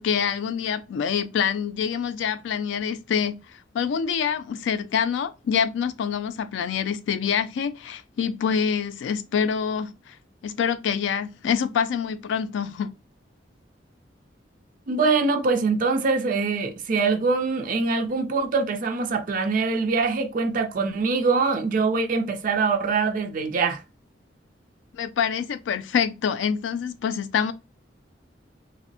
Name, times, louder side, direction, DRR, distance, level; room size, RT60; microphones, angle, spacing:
voice 1, 0.0-3.4 3.7-10.2 10.4-12.9 24.9-27.5, left 7 dB, 85° left, 0.3 m, -26 dB
voice 2, 14.9-23.8, right 4 dB, 50° right, 0.4 m, -23 dB
2.5 x 2.0 x 2.6 m
head